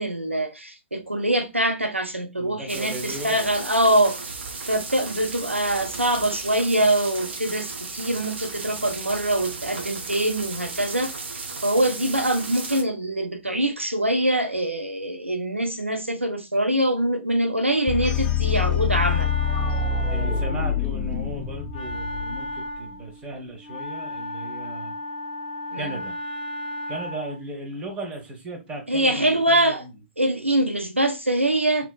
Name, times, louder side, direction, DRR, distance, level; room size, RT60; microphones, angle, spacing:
voice 1, 0.0-4.2 4.7-11.1 11.6-19.3 25.7-26.0 28.9-29.9 30.2-31.9, right 1 dB, 90° right, 0.5 m, -24 dB
voice 2, 2.4-3.5 20.1-24.9 25.8-26.2 26.9-29.9, right 1 dB, 20° right, 1.1 m, -36 dB
sound 1, 2.7-12.8, right 4 dB, 65° right, 0.8 m, -35 dB
sound 2, 17.9-22.8, left 7 dB, 20° left, 0.4 m, -25 dB
Wind instrument woodwind instrument, 18.4-27.5, left 1 dB, 40° left, 1.3 m, -35 dB
3.3 x 2.9 x 2.2 m
figure-of-eight pair, 115°, 7 cm